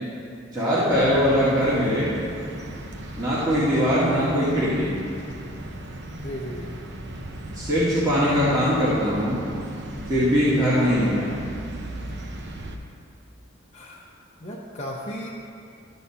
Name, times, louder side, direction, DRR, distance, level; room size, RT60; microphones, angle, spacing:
voice 1, 0.5-2.1 3.2-4.9 7.5-9.4 10.1-11.3, equal, 20° right, -11 dB, 1.8 m, -21 dB
sound 1, 0.9-12.8, right 1 dB, 60° right, 0.8 m, -37 dB
voice 2, 1.2-1.7 4.2-4.5 6.2-6.8 10.7-11.0 13.7-14.1 14.4-15.3, left 1 dB, 35° left, -5 dB, 0.8 m, -35 dB
12.5 x 4.2 x 7.0 m, 2.5 s
head